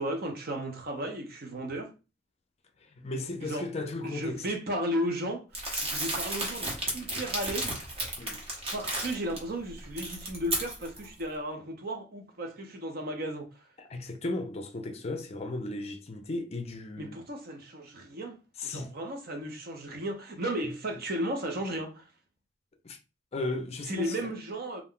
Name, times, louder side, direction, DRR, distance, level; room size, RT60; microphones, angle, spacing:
voice 1, 0.0-1.9 3.4-3.7 4.0-7.8 8.7-13.6 17.0-18.4 18.6-22.1 23.9-24.8, right 1 dB, 55° right, 0.7 m, -34 dB
voice 2, 2.8-4.4 8.2-8.4 13.9-17.2 18.6-18.9 22.8-23.0 23.3-24.2, left 2 dB, 35° left, 0.4 m, -35 dB
Crumpling crinkling, 5.5-9.4 9.8-11.1, right 1 dB, 35° right, 1.0 m, -33 dB
2.4 x 2.2 x 3.6 m
head